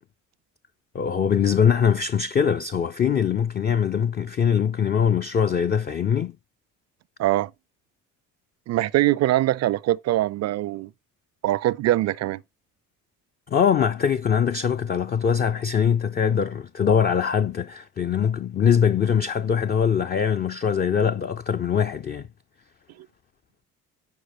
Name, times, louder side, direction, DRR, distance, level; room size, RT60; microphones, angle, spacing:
voice 1, 0.9-6.3 13.5-22.3, left 7 dB, 25° left, 0.4 m, -22 dB
voice 2, 7.2-7.5 8.7-10.9 11.4-12.4, right 15 dB, 40° right, 0.4 m, -22 dB
10.5 x 4.7 x 2.9 m
hypercardioid pair, 55°, 40 cm